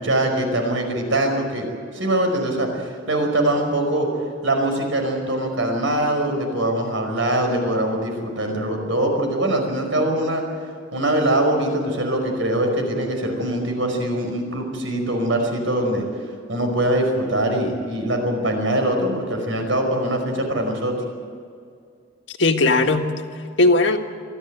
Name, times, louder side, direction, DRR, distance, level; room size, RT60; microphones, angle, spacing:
voice 1, 0.0-1.7 1.9-4.1 4.4-10.4 10.9-16.1 16.5-21.0, right 1 dB, 80° right, 3 dB, 5.2 m, -22 dB
voice 2, 22.3-24.0, left 2 dB, 65° left, 4 dB, 1.7 m, -19 dB
23.5 x 14.5 x 9.5 m, 2.3 s
head